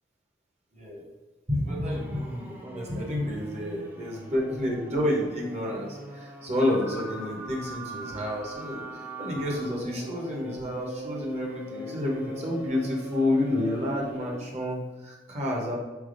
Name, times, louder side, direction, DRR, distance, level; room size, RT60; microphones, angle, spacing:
voice 1, 0.7-1.1 1.5-8.8 9.2-15.8, left 1 dB, 35° right, -1 dB, 0.8 m, -29 dB
sound 1, 1.8-14.6, equal, 10° right, 0.5 m, -40 dB
3.9 x 3.3 x 2.5 m, 1.2 s
head